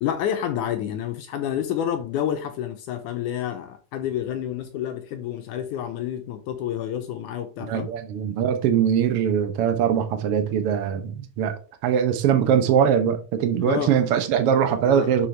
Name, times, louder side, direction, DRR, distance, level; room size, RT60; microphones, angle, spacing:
voice 1, 0.0-7.9 13.6-13.9 14.8-15.3, left 10 dB, 75° left, 2.0 m, -29 dB
voice 2, 7.6-11.5 11.8-15.3, right 8 dB, 90° right, 1.2 m, -22 dB
7.1 x 6.5 x 3.3 m
omnidirectional pair, 4.1 m